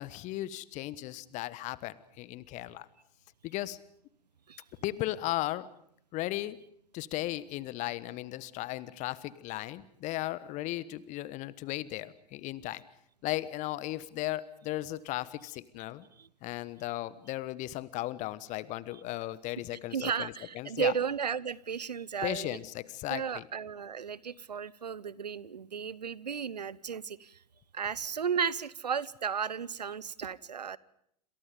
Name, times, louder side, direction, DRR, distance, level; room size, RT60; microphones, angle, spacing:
voice 1, 0.0-2.9 3.4-3.8 4.8-5.7 6.1-6.6 6.9-12.8 13.2-16.1 16.4-20.9 22.2-23.4, left 16 dB, 35° left, 18 dB, 1.3 m, -36 dB
voice 2, 19.9-22.6 23.1-27.4 27.7-30.8, right 7 dB, 75° right, 22 dB, 0.9 m, -34 dB
28.0 x 27.0 x 5.3 m, 0.68 s
figure-of-eight pair, 95°, 21 cm